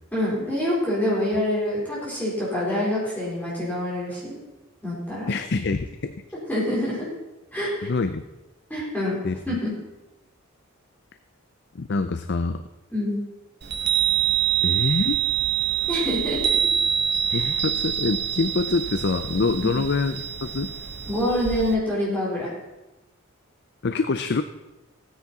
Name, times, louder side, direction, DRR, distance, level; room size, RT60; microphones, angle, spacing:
voice 1, 0.1-4.4 4.8-5.3 6.5-7.1 7.5-7.9 8.7-9.2 9.5-9.7 12.9-13.2 15.9-16.4 17.3-17.5 19.6-19.7 21.1-22.5, left 1 dB, 10° left, -7 dB, 4.1 m, -26 dB
voice 2, 5.3-6.2 7.8-8.2 9.2-9.6 11.7-12.6 14.6-15.2 17.3-20.7 23.8-24.4, left 3 dB, 55° left, 9 dB, 0.5 m, -25 dB
Chime, 13.6-21.7, right 9 dB, 50° right, 1.2 m, -25 dB
16.0 x 9.7 x 4.2 m, 1.1 s
head